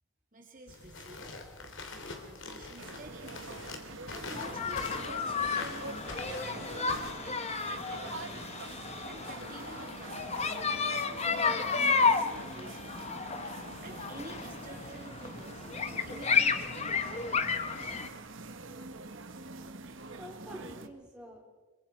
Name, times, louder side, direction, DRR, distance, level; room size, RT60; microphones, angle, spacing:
voice 1, 0.3-1.4 2.0-3.4 4.0-6.1 6.4-6.9 7.1-8.7 9.1-10.9 11.2-13.3 13.8-15.6 16.1-17.2, right 2 dB, 40° right, 1 dB, 2.3 m, -50 dB
sound 1, 0.7-7.1, left 3 dB, 55° left, 2.7 m, -44 dB
sound 2, 2.8-20.9, right 3 dB, 60° right, 1.3 m, -45 dB
sound 3, 4.3-18.1, left 5 dB, 30° left, 1.0 m, -32 dB
voice 2, 19.5-21.4, equal, 5° right, -2 dB, 3.4 m, -49 dB
26.5 x 23.0 x 4.5 m, 1.3 s
head